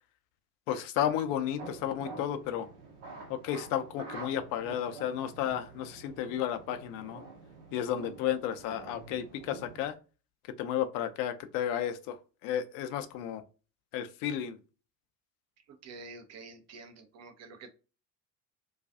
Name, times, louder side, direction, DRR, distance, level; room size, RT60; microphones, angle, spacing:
voice 1, 0.7-2.7 3.3-7.2 7.7-10.0 10.6-13.4 13.9-14.6, left 10 dB, 45° left, 0.5 m, -33 dB
sound 1, 1.6-9.9, right 3 dB, 65° right, 0.8 m, -47 dB
voice 2, 15.7-17.7, right 3 dB, 35° right, 0.6 m, -48 dB
2.3 x 2.3 x 2.5 m
figure-of-eight pair, 60°, 49 cm